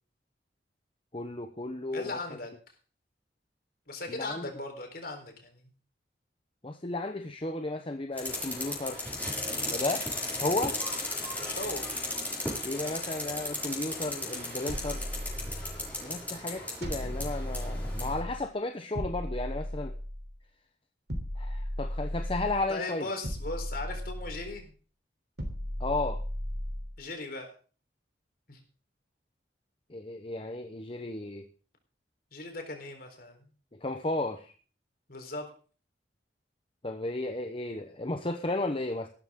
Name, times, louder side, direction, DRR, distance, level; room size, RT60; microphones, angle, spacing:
voice 1, 1.1-2.2 4.1-4.5 6.6-9.1 9.6-10.0 10.4-10.8 12.6-15.1 16.0-19.9 21.4-23.1 25.8-26.2 29.9-31.5 33.7-34.5 36.8-39.1, left 2 dB, 30° left, 6 dB, 0.9 m, -34 dB
voice 2, 1.9-2.5 3.9-5.7 9.4-9.8 11.4-11.9 22.7-24.7 27.0-27.5 28.5-28.6 32.3-33.5 35.1-35.5, left 2 dB, 55° left, 5 dB, 4.1 m, -38 dB
sound 1, 8.2-18.2, left 1 dB, 10° left, 5.8 m, -35 dB
sound 2, 14.7-16.0 16.8-18.4 18.9-20.4 21.1-22.7 23.2-24.6 25.4-27.0, equal, 70° right, 3.4 m, -35 dB
16.0 x 13.0 x 3.8 m, 0.40 s
head